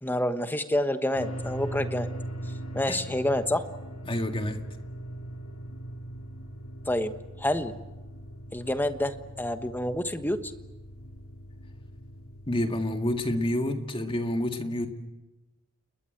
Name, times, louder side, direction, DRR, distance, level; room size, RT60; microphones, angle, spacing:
voice 1, 0.0-2.1 2.7-3.6 6.9-7.1 7.4-7.8 8.5-10.5, left 1 dB, 10° left, 9 dB, 1.2 m, -28 dB
sound 1, 1.1-13.5, right 1 dB, 80° left, 2.6 m, -40 dB
voice 2, 4.1-4.6 12.5-14.9, left 1 dB, 25° left, 6 dB, 2.0 m, -28 dB
29.5 x 21.0 x 7.9 m, 1.1 s
head